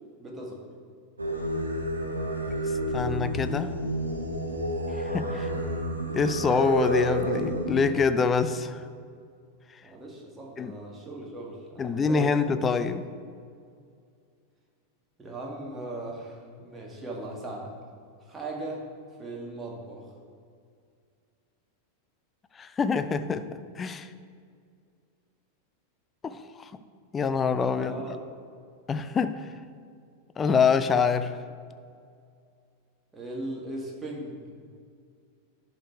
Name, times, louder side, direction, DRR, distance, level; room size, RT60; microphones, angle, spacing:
voice 1, 0.2-0.7 5.1-5.3 9.8-12.3 15.2-17.7 18.2-18.9 19.2-20.1 27.7-28.2 33.1-34.4, right 1 dB, 15° right, -2 dB, 1.8 m, -38 dB
Singing, 1.2-7.9, right 1 dB, 80° right, 0.9 m, -30 dB
voice 2, 2.9-3.8 5.1-5.5 6.1-8.8 10.6-10.7 11.8-13.1 22.6-23.5 23.8-24.1 26.2-26.8 27.1-27.9 28.9-29.4 30.4-31.3, left 5 dB, 20° left, 11 dB, 0.4 m, -25 dB
11.0 x 4.7 x 4.5 m, 2.3 s
figure-of-eight pair, 90°, 0 cm